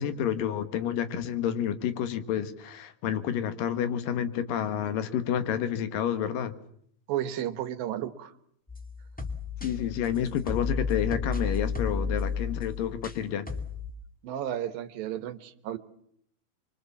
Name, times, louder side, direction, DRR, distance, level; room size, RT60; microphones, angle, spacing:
voice 1, 0.0-6.5 9.6-13.5, left 9 dB, 65° left, 10 dB, 3.1 m, -29 dB
voice 2, 7.1-8.3 14.2-15.8, right 11 dB, 65° right, 11 dB, 2.9 m, -33 dB
sound 1, 8.7-13.2 13.5-13.9, left 5 dB, 5° left, 0.9 m, -32 dB
26.0 x 24.5 x 7.2 m, 0.68 s
omnidirectional pair, 4.6 m